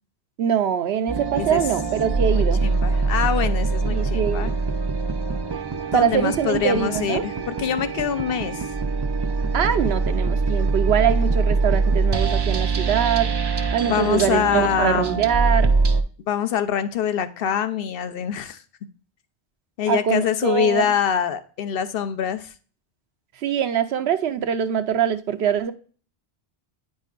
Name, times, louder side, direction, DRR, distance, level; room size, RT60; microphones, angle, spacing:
voice 1, 0.4-2.6 3.9-4.5 5.9-7.2 9.5-13.3 13.7-15.7 19.9-20.8 23.4-25.7, right 8 dB, 80° right, 0.9 m, -23 dB
sound 1, 1.1-16.0, right 4 dB, 40° right, 0.4 m, -23 dB
voice 2, 1.3-1.7 2.3-4.5 5.9-8.7 13.8-15.2 16.3-18.6 19.8-22.5, left 8 dB, 65° left, 0.8 m, -24 dB
9.1 x 5.2 x 2.4 m
omnidirectional pair, 1.0 m